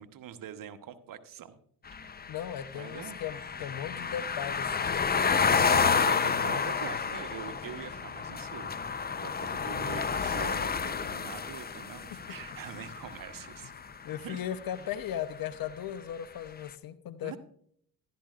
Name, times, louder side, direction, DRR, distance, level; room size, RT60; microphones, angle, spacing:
voice 1, 0.0-1.6 2.7-3.2 5.5-8.8 9.2-13.7 14.2-14.4 14.8-14.9 17.2-17.4, right 9 dB, 55° right, 10 dB, 1.2 m, -44 dB
sound 1, 1.9-13.9, left 6 dB, 25° left, 0.7 m, -30 dB
voice 2, 2.3-7.0 12.7-12.9 14.0-17.4, left 10 dB, 60° left, 13 dB, 0.9 m, -38 dB
13.5 x 12.0 x 2.5 m, 0.65 s
supercardioid pair, 65°, 40 cm